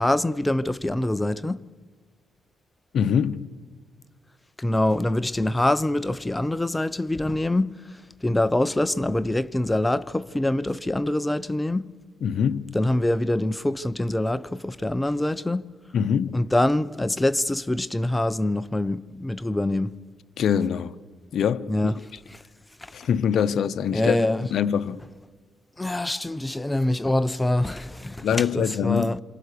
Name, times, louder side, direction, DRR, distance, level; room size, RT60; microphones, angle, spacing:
voice 1, 0.0-1.7 4.6-11.9 12.7-15.7 16.3-20.0 21.7-22.4 22.8-23.0 23.9-24.5 25.8-29.2, left 1 dB, 10° left, 0.8 m, -25 dB
voice 2, 2.9-3.5 12.2-12.7 15.9-16.4 20.4-20.9 21.3-21.9 22.9-24.2 24.5-25.0 28.2-29.1, left 8 dB, 65° left, 1.0 m, -24 dB
27.5 x 27.5 x 6.8 m
cardioid pair, 90°, 0 cm